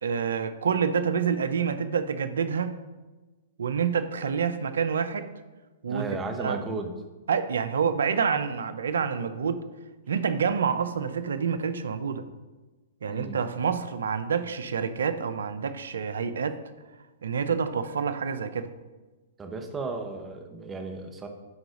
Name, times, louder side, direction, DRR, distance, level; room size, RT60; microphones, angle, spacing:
voice 1, 0.0-2.8 3.6-5.3 5.8-6.1 6.4-6.6 7.3-9.6 10.1-12.2 13.0-16.6 17.2-18.7, right 6 dB, 75° right, 12 dB, 0.6 m, -27 dB
voice 2, 5.9-6.9 13.1-13.4 19.4-21.3, right 3 dB, 15° right, 4 dB, 1.1 m, -34 dB
9.7 x 3.9 x 5.2 m, 1.2 s
hypercardioid pair, 120°, 0 cm